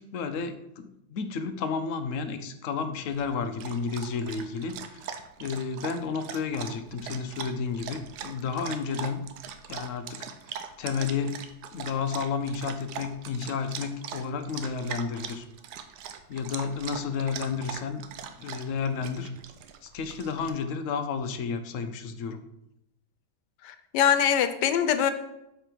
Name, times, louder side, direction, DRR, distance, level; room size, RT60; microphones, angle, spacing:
voice 1, 0.0-5.1 5.4-9.2 9.7-10.3 10.8-11.4 11.7-15.5 16.3-18.0 18.4-19.3 19.8-22.4, left 5 dB, 60° left, 8 dB, 0.9 m, -31 dB
Dog, 3.1-20.5, right 8 dB, 80° right, 1.2 m, -41 dB
voice 2, 23.6-25.1, left 9 dB, 90° left, 11 dB, 1.3 m, -23 dB
6.9 x 5.1 x 4.5 m, 0.84 s
omnidirectional pair, 1.8 m